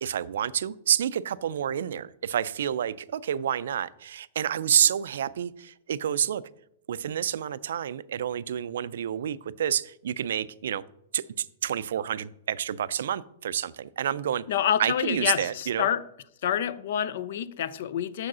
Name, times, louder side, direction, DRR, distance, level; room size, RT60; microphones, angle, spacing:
voice 1, 0.0-6.4 6.9-10.8 11.1-14.4 14.8-15.9, right 9 dB, 75° right, 0.3 m, -29 dB
voice 2, 14.5-16.0 16.4-18.3, left 10 dB, 60° left, 0.4 m, -27 dB
6.3 x 4.8 x 6.1 m
hypercardioid pair, 160°, 0 cm